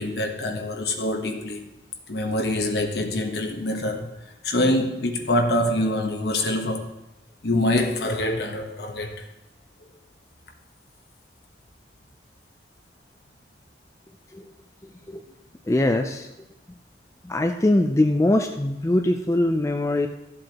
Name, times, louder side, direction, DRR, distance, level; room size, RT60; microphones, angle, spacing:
voice 1, 0.0-1.6 2.1-4.2 4.4-6.9 7.4-9.3, left 1 dB, 65° left, 1.1 m, -25 dB
voice 2, 15.7-16.3 17.2-20.1, left 1 dB, 15° left, 0.4 m, -22 dB
14.0 x 7.7 x 2.9 m
head